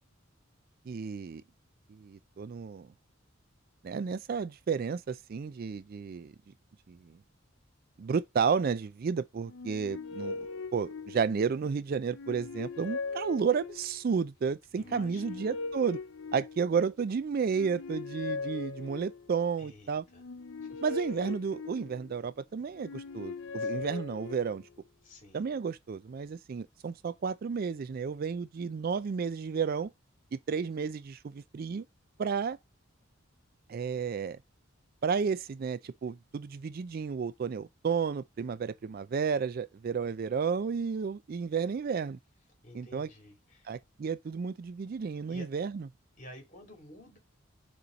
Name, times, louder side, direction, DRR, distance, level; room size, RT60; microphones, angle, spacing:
voice 1, 0.9-1.4 1.9-2.9 3.8-6.3 6.9-7.2 8.0-10.5 10.7-16.0 16.3-20.0 20.8-24.6 25.3-29.9 30.3-31.8 32.2-32.6 33.7-34.4 35.0-42.2 42.7-43.1 43.7-45.9, right 6 dB, 50° right, 0.3 m, -32 dB
sound 1, 9.5-11.6 12.1-14.1 14.8-16.9 17.4-19.4 20.1-22.3 22.7-24.8, left 4 dB, 75° left, 0.7 m, -40 dB
voice 2, 14.8-15.6 19.6-20.2 20.6-20.8 23.6-24.0 25.0-25.5 42.6-43.8 45.3-45.5 46.2-47.2, left 1 dB, 40° left, 2.6 m, -52 dB
6.8 x 3.1 x 5.0 m
head